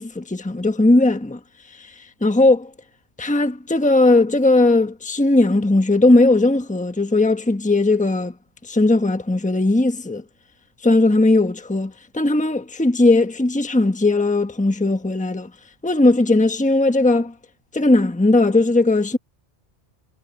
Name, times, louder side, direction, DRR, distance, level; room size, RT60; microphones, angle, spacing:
voice 1, 0.0-1.4 1.8-1.9 2.2-2.7 3.2-8.3 8.6-10.2 10.8-15.5 15.8-17.3 17.7-19.2, left 2 dB, 5° left, 1.1 m, -18 dB
omnidirectional pair, 1.2 m